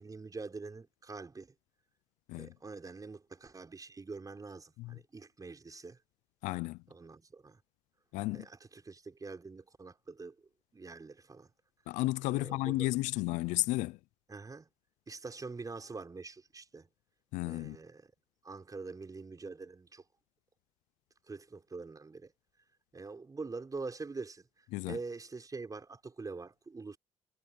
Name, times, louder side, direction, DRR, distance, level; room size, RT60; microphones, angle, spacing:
voice 1, 0.0-1.5 2.3-6.0 6.9-7.6 8.3-10.4 10.7-11.5 12.3-12.9 14.3-14.7 15.1-16.9 17.4-18.1 18.4-20.0 21.3-22.3 22.9-27.0, right 4 dB, 30° right, 5.5 m, -45 dB
voice 2, 6.4-6.8 8.1-8.5 11.9-14.0 17.3-17.8 24.7-25.0, left 20 dB, 85° left, 0.5 m, -33 dB
supercardioid pair, 65°, 12 cm